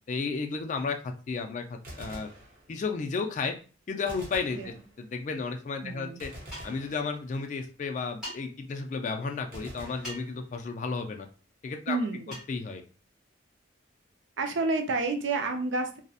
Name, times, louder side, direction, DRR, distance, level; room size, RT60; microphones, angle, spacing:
voice 1, 0.1-2.3 2.7-3.5 3.9-6.3 6.6-11.3 11.6-12.0 12.3-12.8, left 4 dB, 40° left, 4 dB, 0.3 m, -33 dB
Gunshot gunfire, 1.8-3.1 4.1-5.3 6.2-7.6 9.5-10.9, equal, 45° right, 0.8 m, -46 dB
voice 2, 5.8-6.2 11.9-12.3 14.4-16.0, right 3 dB, 80° right, 5 dB, 0.4 m, -29 dB
sound 1, 6.5-6.9 8.2-8.4 10.0-10.4 12.3-12.5, equal, 5° right, 1.3 m, -41 dB
2.7 x 2.0 x 2.3 m, 0.36 s
head